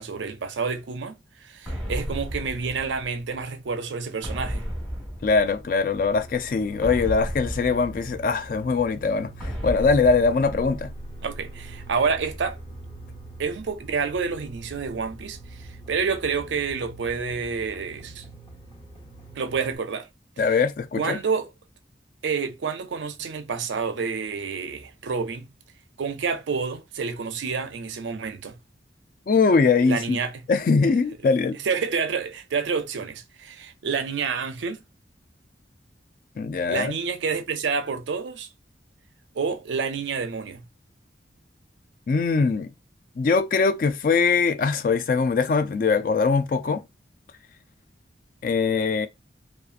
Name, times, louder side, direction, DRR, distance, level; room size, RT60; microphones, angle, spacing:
voice 1, 0.0-4.6 11.2-12.6 13.4-18.2 19.3-20.1 20.5-20.6 21.0-21.5 22.2-25.5 26.0-28.6 29.9-30.4 31.6-34.8 36.7-38.5 39.3-40.6, right 5 dB, 85° right, 0.5 m, -28 dB
sound 1, 1.7-3.4 4.2-5.9 6.8-8.6 9.4-11.2, equal, ahead, 0.9 m, -34 dB
voice 2, 5.2-10.9 20.4-21.2 29.3-30.2 30.5-31.6 36.4-36.9 42.1-42.7 43.2-46.8 48.4-49.1, left 4 dB, 50° left, 0.3 m, -22 dB
sound 2, 5.9-19.8, right 2 dB, 30° left, 0.8 m, -43 dB
2.7 x 2.4 x 2.4 m
head